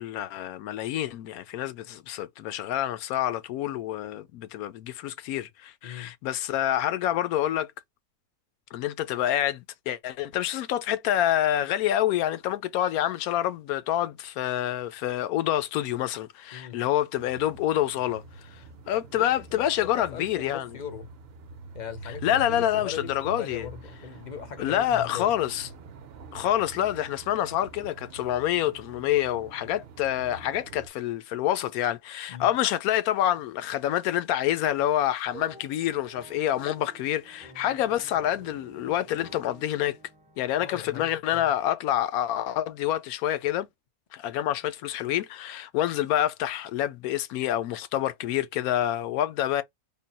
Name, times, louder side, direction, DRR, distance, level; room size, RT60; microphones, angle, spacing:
voice 1, 0.0-7.7 8.7-20.7 22.2-23.7 24.6-25.7 26.3-40.0 40.4-43.7 44.1-49.6, left 12 dB, 90° left, 1.0 m, -27 dB
sound 1, 17.1-30.9, right 4 dB, 55° right, 0.7 m, -45 dB
voice 2, 19.1-19.6 19.9-21.1 21.7-25.3 32.3-32.5 40.6-41.4, left 8 dB, 50° left, 0.5 m, -40 dB
sound 2, 35.2-41.1, right 4 dB, 10° right, 0.5 m, -50 dB
3.7 x 2.2 x 4.0 m
omnidirectional pair, 1.5 m